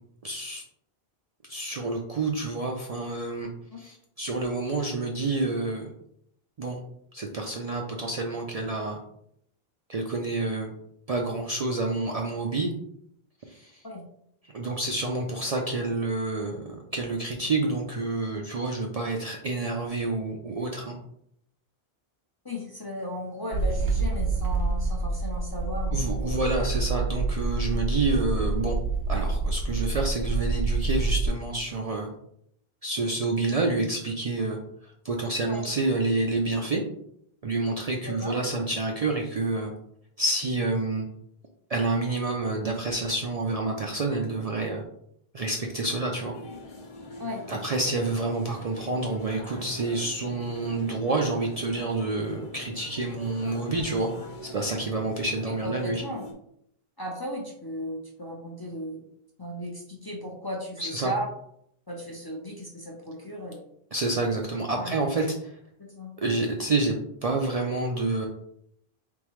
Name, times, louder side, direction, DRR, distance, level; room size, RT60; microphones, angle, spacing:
voice 1, 0.2-0.6 1.5-3.5 3.8-5.9 6.6-6.8 7.1-9.0 9.9-10.7 11.1-12.7 13.5-13.8 14.5-21.0 25.9-28.8 29.1-32.1 32.8-36.8 37.4-39.7 40.2-41.1 41.7-44.8 45.3-46.4 47.5-54.1 54.4-56.0 60.8-61.1 63.9-65.5 66.2-66.9 67.2-68.2, right 2 dB, 50° right, 1 dB, 0.5 m, -28 dB
voice 2, 22.4-26.4 35.4-35.6 38.1-38.4 47.2-47.4 55.5-56.2 57.0-59.0 59.4-61.3 61.9-63.6 64.7-64.9 65.8-66.1, equal, 30° left, -2 dB, 0.6 m, -36 dB
sound 1, 23.5-31.3, right 3 dB, 90° right, 1.1 m, -27 dB
sound 2, 46.2-56.3, left 1 dB, 55° left, 0.9 m, -43 dB
3.6 x 3.6 x 3.1 m, 0.72 s
omnidirectional pair, 1.1 m